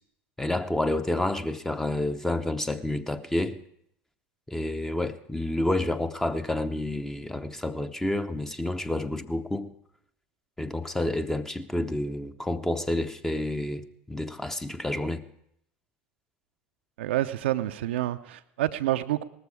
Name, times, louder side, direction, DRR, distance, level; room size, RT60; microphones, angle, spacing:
voice 1, 0.4-3.6 4.5-9.7 10.6-15.2, left 1 dB, 5° left, 0.9 m, -29 dB
voice 2, 17.0-19.2, right 14 dB, 70° right, 0.7 m, -28 dB
19.0 x 14.0 x 4.9 m
figure-of-eight pair, 80°, 6 cm